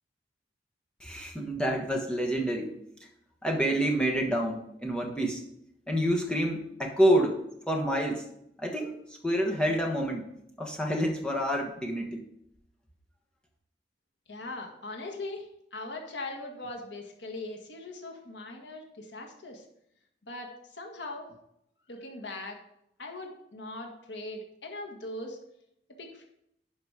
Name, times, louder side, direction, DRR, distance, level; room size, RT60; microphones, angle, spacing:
voice 1, 1.0-2.7 3.4-5.5 5.9-8.2 8.6-8.9 9.2-10.3 10.6-12.2, equal, 5° left, 0 dB, 1.2 m, -28 dB
voice 2, 14.3-19.6 20.3-21.3 21.9-22.6 23.0-25.4 26.0-26.3, left 2 dB, 90° left, 3 dB, 1.6 m, -40 dB
11.0 x 5.3 x 4.8 m, 0.76 s
head